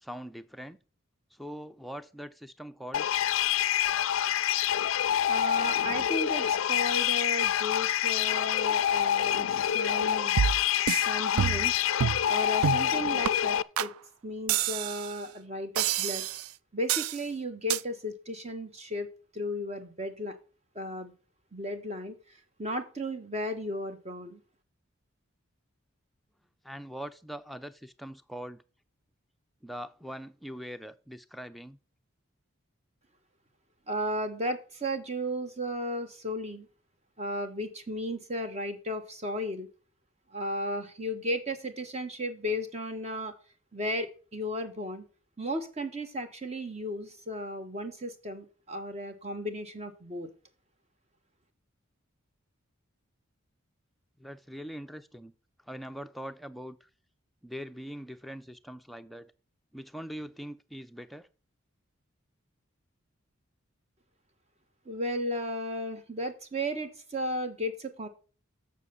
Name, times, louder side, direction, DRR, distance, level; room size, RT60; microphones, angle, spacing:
voice 1, 0.0-0.8 1.3-3.1 26.6-28.6 29.6-31.8 54.2-55.3 55.7-56.9 57.4-59.3 59.7-61.3, equal, ahead, 0.4 m, -42 dB
sound 1, 2.9-13.6, left 10 dB, 70° left, 0.4 m, -27 dB
voice 2, 5.3-10.4 11.1-11.7 12.3-13.9 14.2-16.3 16.7-19.1 19.3-20.4 20.7-21.1 21.5-22.1 22.6-24.4 33.9-36.7 37.2-39.7 40.3-43.3 43.7-45.0 45.4-50.3 64.8-68.1, equal, 30° right, 1.3 m, -34 dB
sound 2, 10.4-11.1 11.4-11.7 12.0-12.2 12.6-12.9 13.2-13.3 13.8-13.9 14.5-15.1 15.8-16.5 16.9-17.2 17.7-17.8, right 9 dB, 90° right, 0.4 m, -28 dB
7.4 x 6.8 x 6.8 m
head